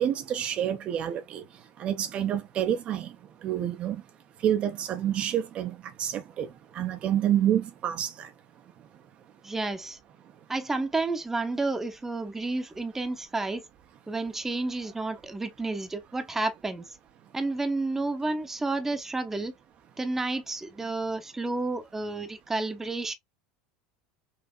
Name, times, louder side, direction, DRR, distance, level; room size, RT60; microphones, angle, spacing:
voice 1, 0.0-1.4 1.8-3.1 3.4-4.0 4.4-6.5 6.7-8.3, right 10 dB, 45° right, 0.7 m, -28 dB
voice 2, 9.4-10.0 10.5-13.6 14.1-16.9 17.3-19.5 20.0-23.1, right 2 dB, 10° right, 0.9 m, -31 dB
5.6 x 2.8 x 2.4 m
hypercardioid pair, 80°, 3 cm